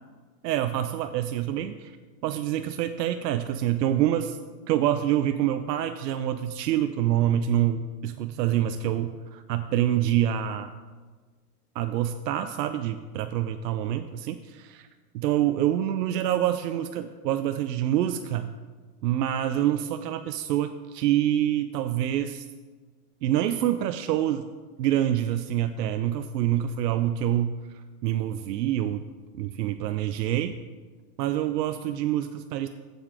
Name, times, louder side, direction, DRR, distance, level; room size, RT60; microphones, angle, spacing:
voice 1, 0.4-1.9 2.2-4.4 4.7-10.7 11.8-14.9 15.1-18.5 19.0-22.5 23.2-24.5 24.8-29.1 29.3-30.6 31.2-32.7, right 11 dB, 80° right, 9 dB, 0.6 m, -26 dB
7.6 x 7.0 x 4.8 m, 1.4 s
hypercardioid pair, 125°, 48 cm